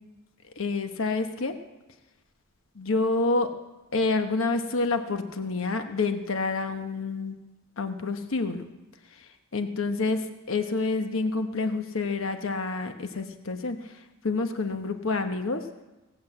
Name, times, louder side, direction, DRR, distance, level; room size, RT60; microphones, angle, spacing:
voice 1, 0.6-1.5 2.8-3.5 3.9-7.3 7.8-8.6 9.5-13.8 14.2-15.6, left 3 dB, 70° left, 7 dB, 1.0 m, -28 dB
17.5 x 7.9 x 7.7 m, 1.1 s
head